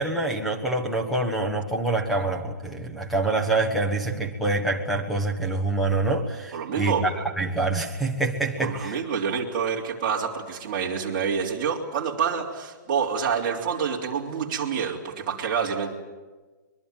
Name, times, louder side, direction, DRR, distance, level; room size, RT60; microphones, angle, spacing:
voice 1, 0.0-9.0, right 2 dB, ahead, 2 dB, 1.4 m, -26 dB
voice 2, 6.5-7.1 8.6-15.9, right 6 dB, 25° right, -2 dB, 3.4 m, -27 dB
23.0 x 22.5 x 9.2 m, 1.3 s
hypercardioid pair, 175°, 10 cm